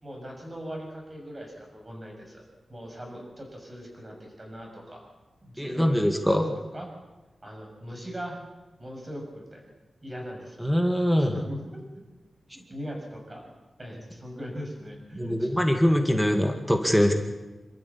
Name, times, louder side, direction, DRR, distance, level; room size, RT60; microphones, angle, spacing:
voice 1, 0.0-2.4 2.7-5.0 5.4-6.4 6.7-6.9 7.4-8.4 8.8-9.7 10.0-10.7 11.3-11.8 12.5-13.5 13.8-15.5, equal, 25° right, 1 dB, 6.9 m, -40 dB
voice 2, 5.6-6.5 10.6-11.3 15.2-17.1, equal, ahead, 4 dB, 2.1 m, -23 dB
27.5 x 13.5 x 8.6 m, 1.1 s
wide cardioid pair, 140°, 0 cm